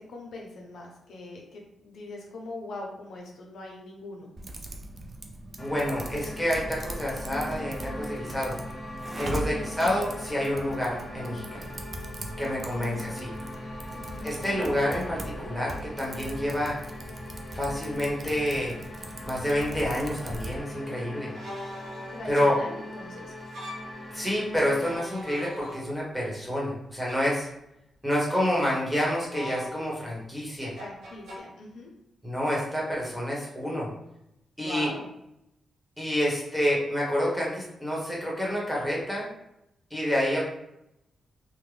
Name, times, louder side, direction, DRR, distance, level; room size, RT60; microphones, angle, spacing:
voice 1, 0.1-4.3 9.2-9.6 12.4-12.8 13.9-14.2 22.1-23.3 30.8-31.9 34.6-35.1, left 2 dB, 75° left, -1 dB, 0.6 m, -41 dB
Typing, 4.4-20.6, right 2 dB, 35° right, 0.5 m, -40 dB
sound 1, 5.6-25.0, left 1 dB, 30° left, 0.8 m, -41 dB
voice 2, 5.6-8.5 9.2-11.7 12.4-13.3 14.2-16.8 17.5-18.7 19.2-21.3 22.3-22.6 24.1-27.5 28.0-30.7 32.2-33.9 34.6-34.9 36.0-39.3 39.9-40.4, equal, ahead, -5 dB, 1.4 m, -28 dB
sound 2, 19.5-19.6 21.3-22.4 23.4-24.0 24.7-26.2 27.0-27.4 29.3-30.1 30.8-31.4, equal, 85° right, 0.8 m, -41 dB
3.4 x 2.2 x 3.3 m, 0.83 s
cardioid pair, 80°, 0 cm